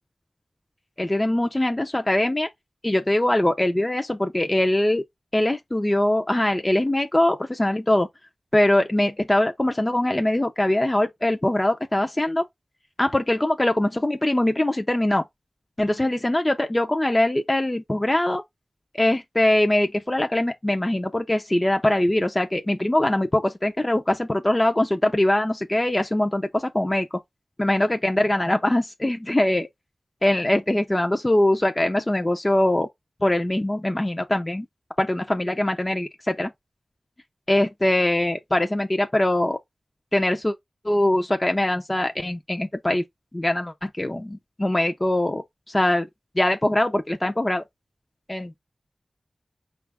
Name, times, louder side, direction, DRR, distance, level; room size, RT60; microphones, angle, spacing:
voice 1, 1.0-2.5 2.8-5.0 5.3-8.1 8.5-12.5 13.0-15.2 15.8-18.4 18.9-27.1 27.6-29.7 30.2-32.9 33.2-34.7 35.0-36.5 37.5-39.6 40.1-40.5 40.8-43.0 43.3-46.1 46.4-47.6 48.3-48.6, left 1 dB, 25° left, 0.6 m, -22 dB
4.9 x 2.4 x 3.4 m
cardioid pair, 45°, 0 cm